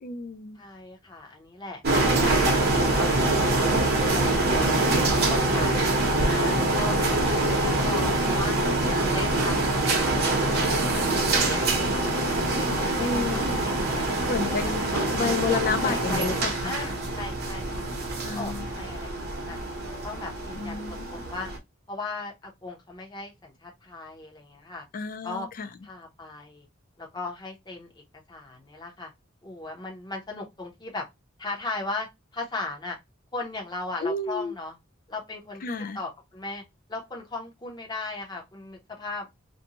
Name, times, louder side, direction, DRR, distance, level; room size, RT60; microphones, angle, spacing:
voice 1, 0.0-0.6 13.0-13.4 14.3-14.8 15.1-16.7 18.2-18.7 20.6-21.2 24.9-25.7 34.0-34.5 35.6-36.0, left 4 dB, 45° left, 0.3 m, -30 dB
voice 2, 0.5-3.7 4.0-4.8 5.1-7.0 7.2-8.5 8.9-9.8 10.1-10.7 10.9-14.3 14.6-15.1 15.8-16.3 16.6-17.8 18.2-19.6 20.0-21.5 21.9-24.8 25.2-25.5 25.8-26.7 27.0-28.0 28.3-29.1 29.4-31.0 31.4-33.0 33.3-34.8 35.1-36.6 36.9-39.3, left 3 dB, 20° left, 0.8 m, -37 dB
sound 1, 1.8-21.6, right 2 dB, 50° right, 0.8 m, -25 dB
2.6 x 2.2 x 2.8 m
head